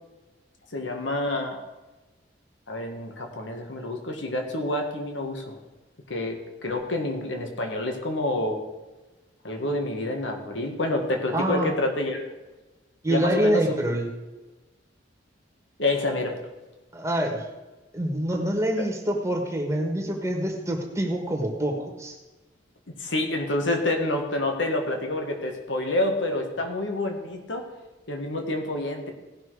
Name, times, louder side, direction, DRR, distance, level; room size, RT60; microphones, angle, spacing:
voice 1, 0.7-1.6 2.7-5.5 6.1-8.6 9.4-12.3 13.1-13.6 15.8-16.4 18.8-18.9 23.0-27.6 28.1-29.1, left 2 dB, 85° left, 3 dB, 1.7 m, -28 dB
voice 2, 11.3-11.7 13.0-14.1 16.9-17.5 17.9-22.2, right 1 dB, 15° right, 2 dB, 1.5 m, -26 dB
17.0 x 6.1 x 4.8 m, 1.1 s
head